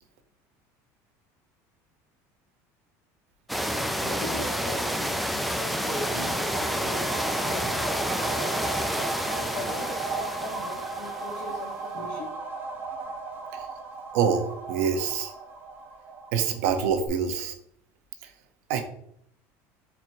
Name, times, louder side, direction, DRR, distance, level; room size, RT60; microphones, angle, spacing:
sound 1, 3.5-11.5, equal, ahead, 0.4 m, -29 dB
voice 1, 4.0-8.8 9.2-12.4, left 2 dB, 70° left, -6 dB, 1.3 m, -40 dB
sound 2, 5.5-16.7 17.1-17.2, right 3 dB, 25° right, 0.8 m, -36 dB
voice 2, 14.1-15.3 16.3-17.5 18.7-18.8, right 7 dB, 80° right, 7 dB, 0.7 m, -26 dB
4.2 x 2.7 x 4.4 m, 0.68 s
cardioid pair, 155°, 8 cm